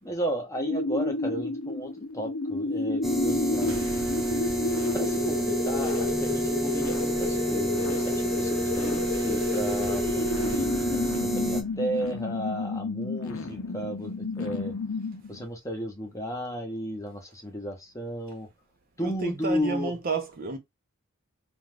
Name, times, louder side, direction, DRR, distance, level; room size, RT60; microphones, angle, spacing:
voice 1, 0.0-3.8 4.9-14.7 15.3-18.5 19.0-19.9, right 1 dB, 15° left, 0.8 m, -34 dB
sound 1, 0.5-15.4, left 3 dB, 70° left, 0.6 m, -31 dB
sound 2, 3.0-11.6, right 1 dB, ahead, 0.4 m, -28 dB
sound 3, 3.7-12.7, right 1 dB, 80° right, 1.1 m, -44 dB
voice 2, 19.0-20.6, right 3 dB, 40° right, 0.6 m, -31 dB
2.5 x 2.3 x 3.2 m
head